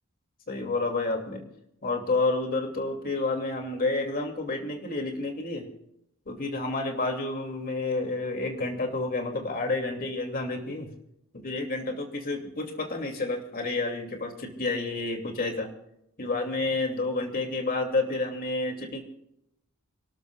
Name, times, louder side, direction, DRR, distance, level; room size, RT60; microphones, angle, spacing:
voice 1, 0.5-1.4 1.8-5.7 6.3-10.9 11.3-15.7 16.2-19.0, left 3 dB, 45° left, 2 dB, 2.7 m, -30 dB
29.5 x 12.5 x 2.5 m, 0.77 s
head